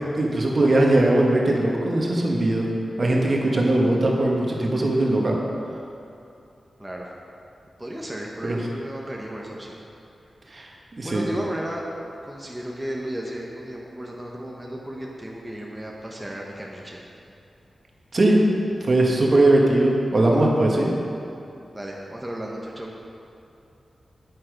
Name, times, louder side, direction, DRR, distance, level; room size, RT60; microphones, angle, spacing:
voice 1, 0.1-2.7 3.0-5.4 8.4-8.6 10.5-11.2 18.1-18.4 18.8-20.9, right 1 dB, 45° right, -1 dB, 1.5 m, -20 dB
voice 2, 7.8-9.8 11.0-11.8 12.2-17.0 21.7-22.9, right 1 dB, 10° right, -3 dB, 1.1 m, -34 dB
8.8 x 8.2 x 5.2 m, 2.7 s
wide cardioid pair, 80°, 0 cm